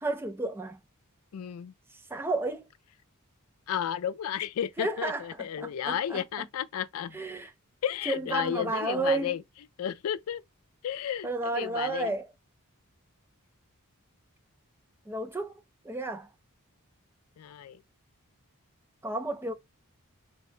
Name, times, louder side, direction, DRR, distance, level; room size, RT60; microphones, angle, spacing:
voice 1, 0.0-0.8 1.9-2.7 4.8-6.5 7.1-7.5 8.1-9.4 11.2-12.3 15.1-16.3 19.0-19.5, right 2 dB, 10° right, 0.3 m, -32 dB
voice 2, 1.3-1.7 3.7-7.2 7.8-9.4 9.8-10.4 10.8-12.1 17.4-17.8, left 9 dB, 70° left, 0.3 m, -33 dB
3.9 x 2.2 x 2.4 m
head